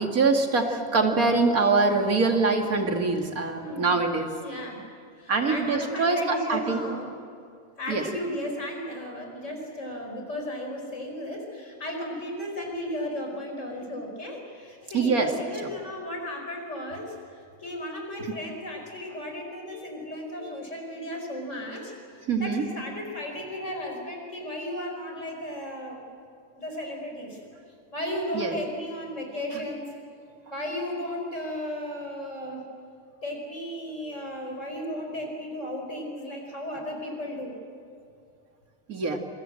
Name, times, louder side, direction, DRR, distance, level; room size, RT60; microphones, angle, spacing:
voice 1, 0.0-4.3 5.3-6.8 7.9-8.0 14.9-15.3 19.7-19.8 20.4-20.5 22.3-22.6 28.3-28.5 38.9-39.2, right 3 dB, 80° right, 3 dB, 2.7 m, -24 dB
voice 2, 3.5-3.9 4.4-4.8 5.2-7.1 7.8-26.0 26.5-27.4 27.9-29.9 30.4-32.6 33.2-37.6, left 1 dB, 55° left, 2 dB, 5.4 m, -35 dB
27.0 x 23.0 x 7.7 m, 2.3 s
omnidirectional pair, 1.5 m